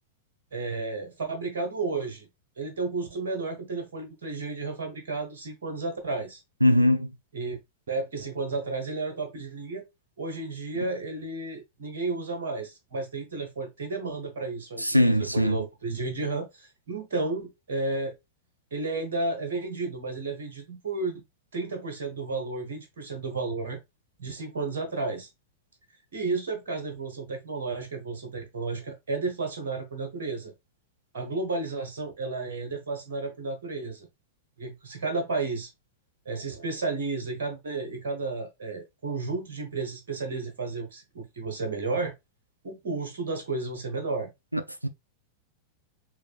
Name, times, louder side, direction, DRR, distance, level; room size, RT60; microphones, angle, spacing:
voice 1, 0.5-2.3 2.6-6.4 7.3-7.6 7.9-9.8 10.2-18.1 18.7-21.1 21.5-23.8 24.2-25.3 26.1-30.5 31.1-34.1 34.6-35.7 36.2-42.1 42.6-44.3, right 3 dB, 60° right, 1.2 m, -32 dB
voice 2, 6.6-7.1 10.7-10.8 14.8-15.6 44.5-44.9, left 1 dB, 90° right, 0.4 m, -22 dB
6.2 x 2.6 x 2.4 m
figure-of-eight pair, 90°, 0 cm